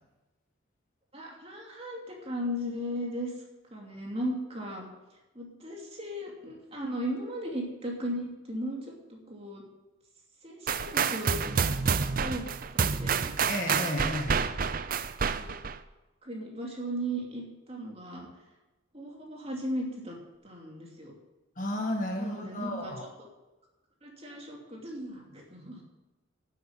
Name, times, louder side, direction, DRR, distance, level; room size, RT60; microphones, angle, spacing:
voice 1, 1.1-3.3 3.7-4.8 5.3-9.6 10.4-11.6 12.0-12.5 12.7-13.3 14.9-15.0 15.3-15.5 16.2-18.3 18.9-20.2 20.4-21.1 22.1-22.9 23.2-23.3 24.0-25.8, equal, 30° right, -1 dB, 2.8 m, -37 dB
sound 1, 10.7-15.8, right 6 dB, 45° right, 0.5 m, -28 dB
voice 2, 13.5-14.4 21.6-23.0, left 1 dB, 40° left, 2 dB, 1.5 m, -32 dB
12.0 x 8.1 x 8.3 m, 1.1 s
head